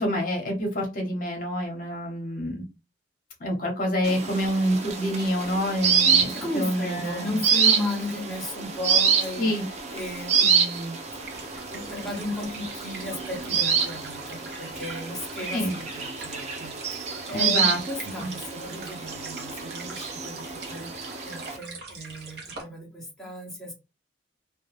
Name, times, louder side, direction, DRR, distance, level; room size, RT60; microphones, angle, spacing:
voice 1, 0.0-2.6 3.4-7.4 9.4-9.6 15.5-15.7 17.3-17.8 18.2-18.3, equal, 50° left, 1 dB, 0.8 m, -27 dB
sound 1, 4.0-21.6, right 6 dB, 40° right, 0.4 m, -27 dB
voice 2, 6.3-9.5 9.9-11.0 11.3-23.7, left 1 dB, 5° left, -4 dB, 0.7 m, -35 dB
sound 2, 11.1-22.6, right 4 dB, 60° right, 0.8 m, -44 dB
2.2 x 2.2 x 3.1 m, 0.27 s
head